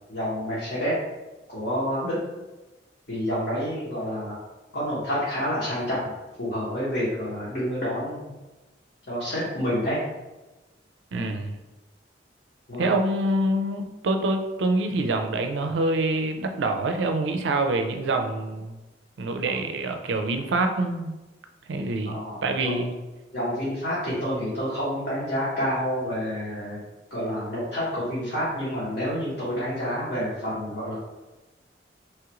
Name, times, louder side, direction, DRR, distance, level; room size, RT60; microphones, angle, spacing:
voice 1, 0.1-0.9 1.5-2.2 3.1-4.4 4.7-6.1 6.4-8.3 9.1-10.0 11.1-11.4 12.7-12.9 19.4-19.6 22.1-22.9 23.3-26.8 27.1-31.0, equal, 60° left, -10 dB, 1.0 m, -28 dB
voice 2, 11.1-11.5 12.8-18.8 19.2-21.2 21.7-22.9, right 2 dB, 80° right, 5 dB, 0.4 m, -26 dB
3.1 x 2.4 x 2.9 m, 1.1 s
head